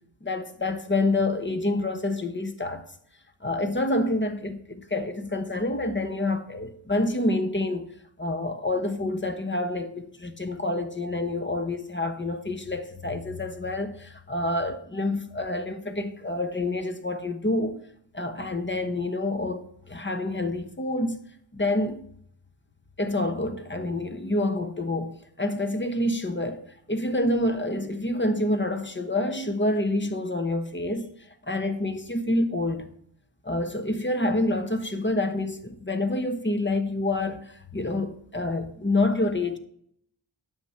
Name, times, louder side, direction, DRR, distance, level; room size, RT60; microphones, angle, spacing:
voice 1, 0.2-2.8 3.4-7.9 8.2-17.8 18.1-21.2 21.5-22.1 23.0-26.6 26.9-31.1 31.5-32.9 33.4-39.6, left 2 dB, 25° left, 1.2 m, -27 dB
9.7 x 7.5 x 5.7 m
wide cardioid pair, 85°, 47 cm